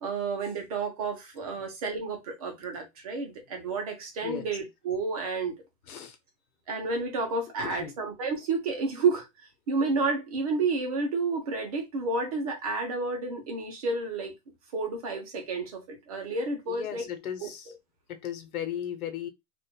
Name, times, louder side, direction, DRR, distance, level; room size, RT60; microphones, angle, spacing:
voice 1, 0.0-5.5 6.7-9.3 9.7-14.3 14.7-17.1 17.4-17.5, right 3 dB, 25° right, 0.8 m, -30 dB
voice 2, 7.6-8.0 16.7-17.7 18.1-19.3, left 10 dB, 70° left, 1.2 m, -36 dB
4.9 x 2.6 x 2.2 m
hypercardioid pair, 175°, 45 cm